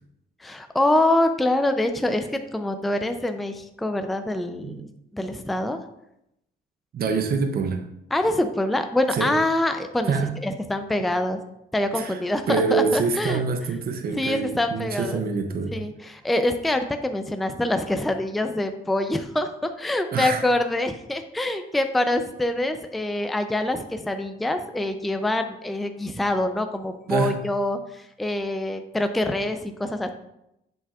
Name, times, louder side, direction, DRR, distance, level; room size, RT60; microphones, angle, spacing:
voice 1, 0.4-5.8 8.1-10.1 10.4-11.4 11.7-13.4 14.1-15.2 15.7-30.1, left 1 dB, ahead, 7 dB, 0.4 m, -25 dB
voice 2, 6.9-7.9 9.1-9.3 10.1-10.5 11.9-12.2 12.5-15.8 20.1-20.4 27.1-27.4, right 5 dB, 50° right, 6 dB, 0.7 m, -25 dB
7.3 x 5.7 x 2.4 m, 0.82 s
cardioid pair, 90°, 20 cm